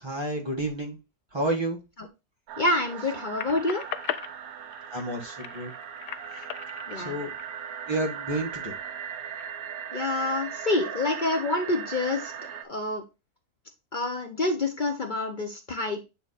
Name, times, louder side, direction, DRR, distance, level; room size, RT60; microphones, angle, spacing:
voice 1, 0.0-1.0 1.3-1.8 4.9-5.7 7.0-7.3 7.9-8.7, right 1 dB, 20° right, 1 dB, 1.5 m, -30 dB
sound 1, 2.5-12.6, right 8 dB, 70° right, 1.1 m, -38 dB
voice 2, 2.6-3.8 6.9-7.2 9.9-12.3 12.6-13.0 13.9-16.0, left 2 dB, 45° left, 5 dB, 0.7 m, -27 dB
sound 2, 3.4-8.1 8.6-9.5, left 11 dB, 85° left, 1.1 m, -39 dB
8.6 x 3.1 x 4.0 m, 0.27 s
omnidirectional pair, 1.6 m